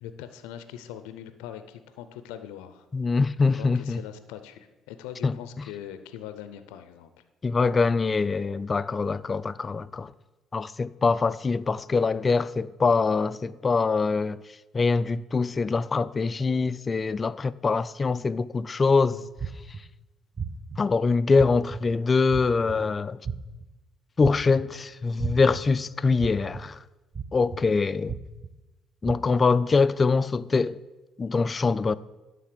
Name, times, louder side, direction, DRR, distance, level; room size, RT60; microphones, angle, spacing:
voice 1, 0.0-2.9 3.5-7.1, left 10 dB, 85° left, 0.5 m, -41 dB
voice 2, 2.9-4.0 5.2-5.4 7.4-10.1 10.5-14.4 14.7-19.3 20.8-23.2 24.2-26.8 27.3-28.2 29.0-30.8 31.2-32.0, left 4 dB, 35° left, 0.3 m, -24 dB
sound 1, 19.4-19.8 20.4-20.8 21.4-21.8 22.3-22.7 23.2-23.6 24.2-24.6 25.2-25.6 26.2-26.6 27.1-27.6 28.1-28.5 29.0-29.1, right 6 dB, 35° right, 0.7 m, -33 dB
11.0 x 3.9 x 6.6 m
supercardioid pair, 65°, 0 cm